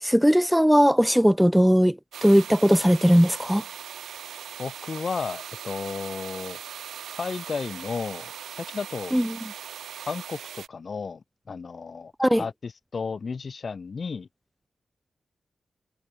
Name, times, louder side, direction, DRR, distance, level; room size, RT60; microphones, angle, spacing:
voice 1, 0.0-3.6 9.1-9.4 12.2-12.4, equal, 5° right, 0.4 m, -19 dB
sound 1, 2.1-10.7, right 9 dB, 90° right, 1.9 m, -40 dB
voice 2, 4.6-6.6 7.2-9.2 10.1-14.3, left 5 dB, 60° left, 2.1 m, -33 dB
cardioid pair, 45°, 0 cm